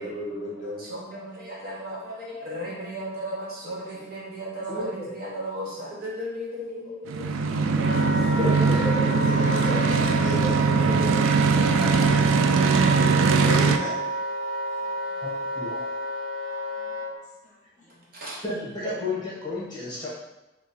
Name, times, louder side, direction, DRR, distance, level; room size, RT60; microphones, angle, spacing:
voice 1, 0.0-0.9 2.6-2.8 4.0-4.2 4.6-4.7 6.8-6.9 8.8-9.8 10.1-11.6 13.4-14.2 14.8-15.2 16.5-18.1, equal, 40° left, -3 dB, 0.8 m, -36 dB
voice 2, 0.8-8.2 9.7-10.0 13.2-13.7 18.1-18.4, equal, 50° right, -5 dB, 1.2 m, -36 dB
sound 1, 7.1-13.8, right 4 dB, 85° right, 0.3 m, -21 dB
Wind instrument woodwind instrument, 7.8-17.1, right 1 dB, 70° right, 1.1 m, -31 dB
voice 3, 8.4-8.8 15.2-15.8 18.4-20.1, left 2 dB, 20° left, -7 dB, 1.3 m, -31 dB
4.6 x 2.2 x 4.2 m, 0.98 s
head